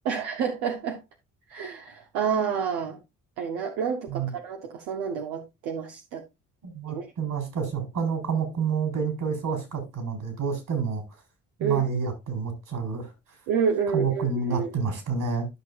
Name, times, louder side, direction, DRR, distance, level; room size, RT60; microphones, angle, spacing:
voice 1, 0.0-1.0 1.5-3.0 3.4-6.2 6.9-7.1 11.6-11.8 13.5-14.7, right 6 dB, 85° right, 1.0 m, -29 dB
voice 2, 6.6-11.0 11.6-13.1 13.9-15.5, right 6 dB, 60° right, 4.3 m, -28 dB
12.5 x 6.1 x 2.4 m
supercardioid pair, 60°, 35 cm